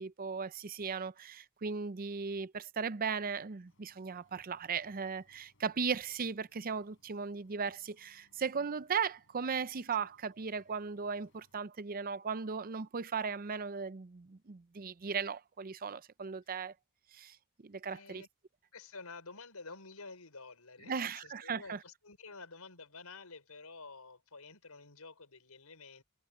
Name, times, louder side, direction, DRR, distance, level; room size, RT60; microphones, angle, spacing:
voice 1, 0.0-16.7 17.1-17.4 17.6-18.2 20.9-21.8, right 5 dB, 40° right, 0.6 m, -37 dB
sound 1, 3.7-11.6, left 1 dB, 60° left, 6.1 m, -73 dB
voice 2, 17.9-18.3 18.7-26.0, left 4 dB, 90° left, 5.7 m, -50 dB
head